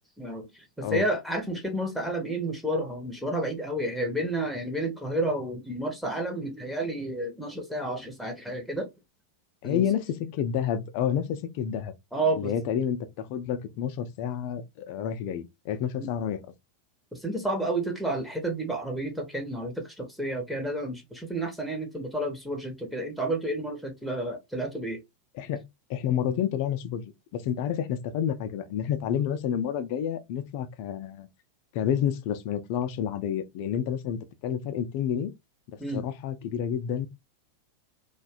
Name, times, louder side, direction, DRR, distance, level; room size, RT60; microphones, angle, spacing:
voice 1, 0.2-8.9 9.6-9.9 12.1-12.6 16.0-16.1 17.1-25.0 35.8-36.1, right 1 dB, ahead, 0.6 m, -31 dB
voice 2, 9.6-11.9 12.4-16.4 25.4-25.6 25.9-27.0 27.3-31.3 31.7-35.3 35.9-37.1, left 9 dB, 45° left, 0.4 m, -29 dB
2.6 x 2.2 x 2.4 m
figure-of-eight pair, 90°, 0 cm